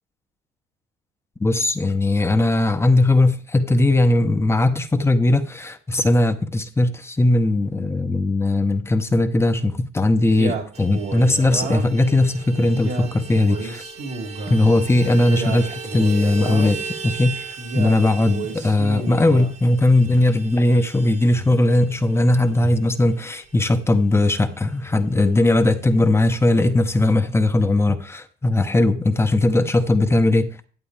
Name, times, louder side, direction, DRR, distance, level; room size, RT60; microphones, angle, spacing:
voice 1, 1.4-13.8 14.5-30.7, left 2 dB, 15° left, 0.8 m, -19 dB
Male speech man speaking, 10.2-12.0 12.6-14.6 15.2-16.9 17.6-19.6, right 3 dB, 75° right, 2.9 m, -31 dB
Vehicle horn car horn honking, 10.7-24.6 24.9-25.0 25.3-25.5 25.8-26.5, right 5 dB, 40° right, 1.0 m, -38 dB
11.0 x 8.3 x 3.3 m
cardioid pair, 110°, 17 cm